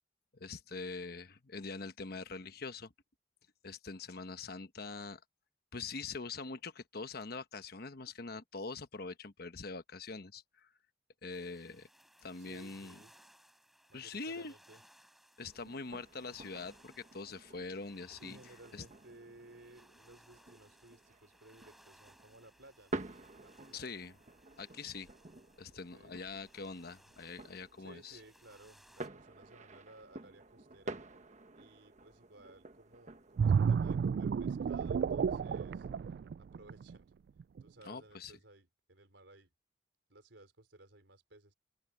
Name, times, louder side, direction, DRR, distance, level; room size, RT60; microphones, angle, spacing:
voice 1, 0.3-2.9 3.6-5.2 5.7-10.7 11.2-11.9 12.2-13.0 13.9-14.5 15.4-18.4 18.7-18.8 23.7-24.1 24.6-25.1 25.6-28.2 37.8-38.3, left 4 dB, 60° left, 1.1 m, -44 dB
sound 1, 11.3-29.1, equal, ahead, 4.6 m, -64 dB
voice 2, 12.4-13.1 13.9-14.8 18.2-23.0 23.4-24.0 25.7-26.2 27.8-31.0 31.5-35.9 36.4-37.1 37.6-39.5 40.1-41.5, right 2 dB, 90° right, 4.0 m, -58 dB
sound 2, 15.4-33.4, right 2 dB, 40° right, 1.3 m, -50 dB
sound 3, 33.4-37.0 37.4-37.6, right 6 dB, 60° right, 0.3 m, -31 dB
open air
head